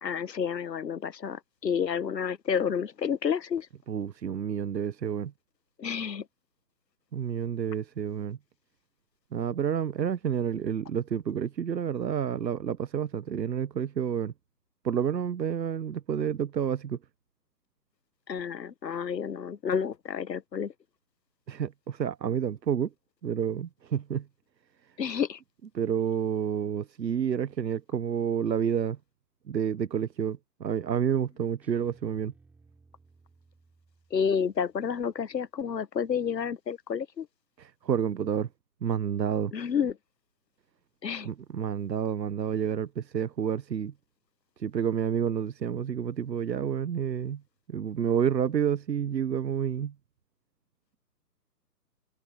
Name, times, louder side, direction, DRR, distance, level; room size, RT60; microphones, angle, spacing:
voice 1, 0.0-3.7 5.8-6.2 18.3-20.7 25.0-25.4 34.1-37.3 39.5-39.9 41.0-41.3, left 7 dB, 80° left, 1.3 m, -30 dB
voice 2, 3.9-5.3 7.1-8.4 9.3-14.3 14.8-17.0 21.5-22.9 23.2-24.3 25.7-29.0 29.5-32.3 37.6-38.5 38.8-39.5 41.2-43.9 44.6-47.4 47.7-49.9, right 8 dB, 90° right, 1.0 m, -29 dB
Guitar, 31.6-34.8, right 4 dB, 5° right, 4.0 m, -60 dB
hypercardioid pair, 170°, 49 cm